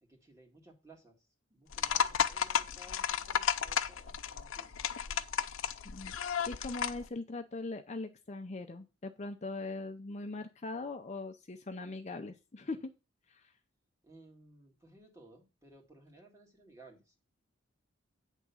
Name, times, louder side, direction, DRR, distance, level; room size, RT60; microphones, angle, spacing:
voice 1, 0.0-4.7 5.1-5.2 14.0-17.2, right 2 dB, 15° right, 1 dB, 2.1 m, -59 dB
sound 1, 1.7-7.0, left 8 dB, 75° left, 0.6 m, -33 dB
voice 2, 5.8-12.9 13.3-13.5, left 3 dB, 35° left, 6 dB, 0.6 m, -41 dB
9.1 x 3.6 x 7.0 m, 0.29 s
head